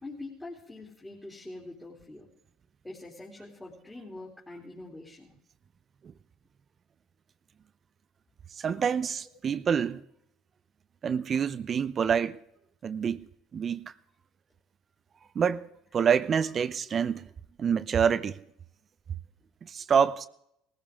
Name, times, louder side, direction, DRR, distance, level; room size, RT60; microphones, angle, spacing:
voice 1, 0.0-2.3 2.8-5.3, left 2 dB, 15° left, 3.1 m, -44 dB
voice 2, 8.6-10.0 11.0-12.4 12.8-13.3 13.5-13.9 15.3-15.7 15.9-17.3 17.6-18.4 19.6-20.3, right 7 dB, 40° right, 0.6 m, -27 dB
18.5 x 15.0 x 3.6 m
supercardioid pair, 85°, 0 cm